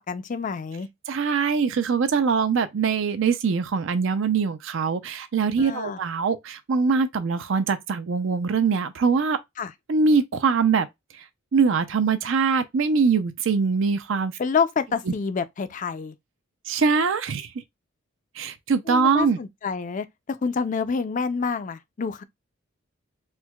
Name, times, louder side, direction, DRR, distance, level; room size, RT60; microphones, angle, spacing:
voice 1, 0.0-0.9 5.6-6.0 9.6-9.7 14.4-16.1 18.9-22.2, left 5 dB, 40° left, 0.4 m, -28 dB
voice 2, 1.1-9.4 9.9-10.9 11.5-14.3 16.7-17.5 18.4-19.4, right 5 dB, 65° right, 0.4 m, -22 dB
4.4 x 2.1 x 2.2 m
head